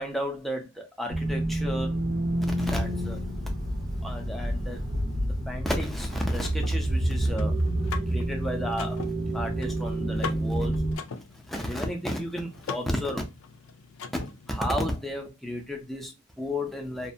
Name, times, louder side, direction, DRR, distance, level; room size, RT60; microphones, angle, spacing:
voice 1, 0.0-2.0 2.4-3.2 4.0-4.8 5.5-7.6 8.1-9.0 9.3-10.7 11.5-13.2 14.5-17.1, equal, ahead, 0.5 m, -32 dB
sound 1, 1.1-11.0, right 1 dB, 55° right, 0.7 m, -28 dB
Car / Mechanisms, 6.0-14.6, left 5 dB, 80° left, 0.4 m, -42 dB
2.6 x 2.1 x 2.6 m
head